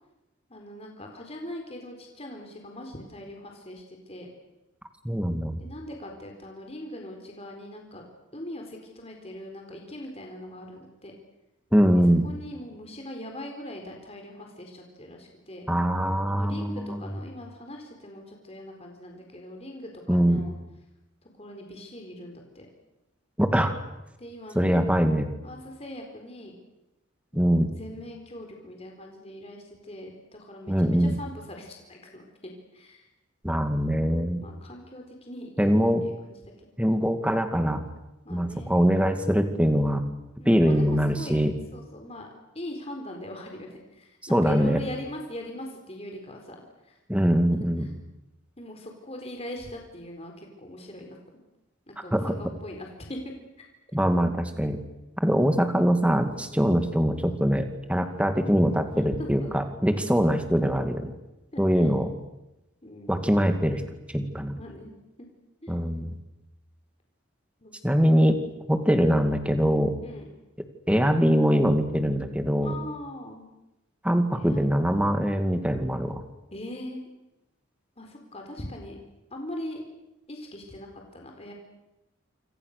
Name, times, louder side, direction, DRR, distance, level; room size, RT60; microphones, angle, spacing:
voice 1, 0.5-4.3 5.6-8.0 8.3-11.1 12.2-15.7 16.3-20.6 21.3-22.7 24.2-25.1 25.4-26.5 27.3-33.1 34.4-36.7 38.2-38.7 40.4-41.4 41.7-42.3 42.5-46.6 46.8-47.0 47.5-47.9 48.6-51.2 51.9-53.3 59.2-59.6 61.5-61.9 62.8-63.2 64.5-64.9 65.6-65.8 67.6-68.0 70.0-70.3 72.6-73.5 74.3-75.2 76.5-77.0 78.0-79.0 79.3-79.8 80.3-81.5, left 1 dB, 30° left, 2 dB, 4.2 m, -41 dB
voice 2, 5.0-5.6 11.7-12.2 15.7-17.0 20.1-20.4 23.4-23.7 24.6-25.3 27.3-27.7 30.7-31.1 33.4-34.4 35.6-36.0 36.8-37.8 38.3-40.0 40.5-41.5 44.3-44.8 47.1-47.9 52.1-52.3 53.9-54.8 55.2-61.1 61.6-62.1 63.1-63.8 64.1-64.5 65.7-66.1 67.8-68.4 68.7-69.9 70.9-72.7 74.0-76.2, equal, 5° right, 7 dB, 2.2 m, -23 dB
28.0 x 26.5 x 6.8 m, 0.96 s
head